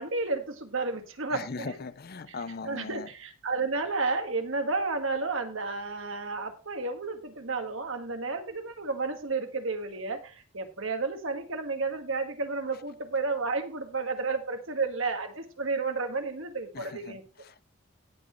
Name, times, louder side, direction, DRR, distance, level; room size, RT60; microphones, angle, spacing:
voice 1, 0.0-1.8 2.3-2.4 2.6-17.2, right 3 dB, 65° right, 1.7 m, -32 dB
voice 2, 1.3-3.1 16.7-17.6, left 4 dB, 45° left, 0.6 m, -40 dB
18.0 x 6.3 x 3.1 m
head